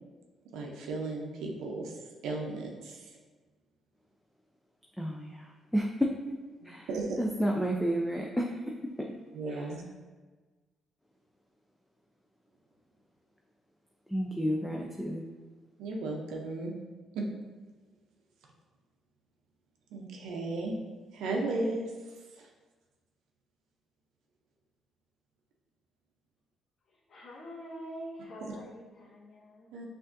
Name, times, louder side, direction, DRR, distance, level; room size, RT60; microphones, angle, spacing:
voice 1, 0.5-1.9 2.2-3.1 6.6-7.2 9.3-9.8 15.8-16.7 17.1-17.2 19.9-20.7 21.1-21.9 22.4-22.5 28.4-28.5 29.7-29.9, right 2 dB, 90° right, 0 dB, 0.6 m, -35 dB
voice 2, 5.0-6.1 6.6-6.9 7.2-9.1 9.5-9.7 14.1-15.3, equal, 5° left, -1 dB, 0.4 m, -31 dB
voice 3, 27.1-29.7, equal, 50° left, -5 dB, 0.8 m, -45 dB
6.0 x 2.6 x 2.6 m, 1.3 s
cardioid pair, 90°, 0 cm